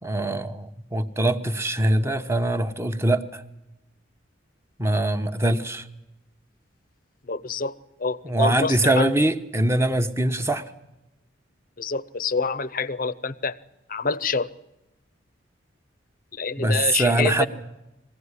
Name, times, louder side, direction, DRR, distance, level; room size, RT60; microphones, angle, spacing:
voice 1, 0.0-3.4 4.8-5.9 8.2-10.6 16.6-17.5, right 1 dB, 15° right, 0.9 m, -23 dB
voice 2, 7.2-7.7 8.0-9.1 11.8-13.5 13.9-14.5 16.3-17.5, left 4 dB, 45° left, 0.7 m, -27 dB
21.5 x 16.0 x 9.7 m
head